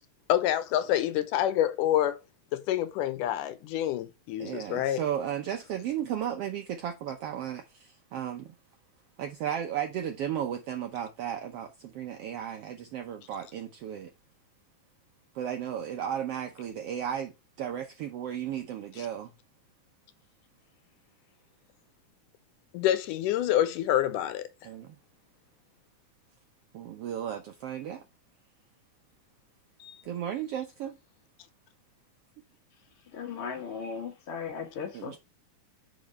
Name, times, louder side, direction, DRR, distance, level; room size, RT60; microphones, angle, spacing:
voice 1, 0.3-2.2 2.5-5.0 19.0-19.1 22.7-24.5 29.8-30.0, left 12 dB, 85° left, 2.2 m, -27 dB
voice 2, 4.4-8.5 9.2-14.1 15.3-17.3 17.6-19.3 24.6-25.0 26.7-28.0 30.0-31.0 34.9-35.2, right 9 dB, 85° right, 1.3 m, -34 dB
voice 3, 33.1-35.2, left 6 dB, 55° left, 1.8 m, -37 dB
5.1 x 5.1 x 5.3 m
omnidirectional pair, 3.8 m